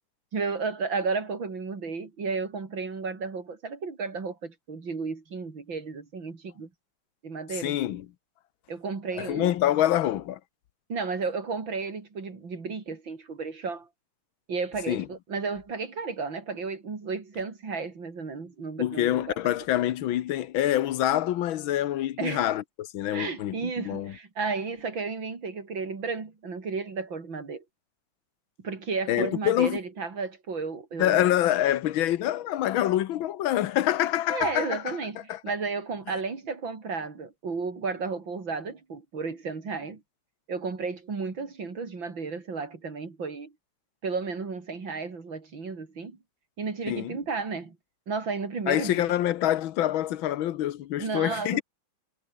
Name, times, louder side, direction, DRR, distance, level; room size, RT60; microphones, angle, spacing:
voice 1, 0.3-6.7 7.2-7.8 8.7-9.5 10.9-13.9 14.5-19.4 22.2-22.5 23.1-27.6 28.6-31.4 34.3-40.0 40.5-43.5 44.0-46.2 46.6-47.8 48.1-49.0 51.0-51.6, right 4 dB, 75° right, 4.3 m, -33 dB
voice 2, 7.6-8.1 9.2-10.4 14.9-15.1 18.8-24.1 29.1-29.8 31.0-35.0 35.3-35.4 46.9-47.2 48.7-51.6, left 12 dB, 85° left, 1.7 m, -26 dB
omnidirectional pair, 2.1 m